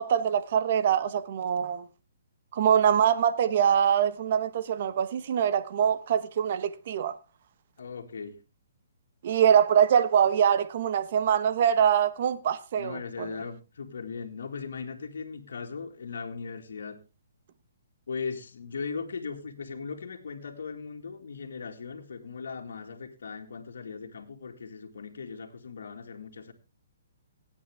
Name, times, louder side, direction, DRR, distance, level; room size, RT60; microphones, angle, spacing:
voice 1, 0.0-1.8 2.5-7.2 9.2-13.3, right 8 dB, 50° right, 1.1 m, -24 dB
voice 2, 7.8-8.4 12.8-17.0 18.1-26.5, left 5 dB, 75° left, 2.0 m, -38 dB
17.5 x 8.7 x 3.5 m
hypercardioid pair, 145°, 0 cm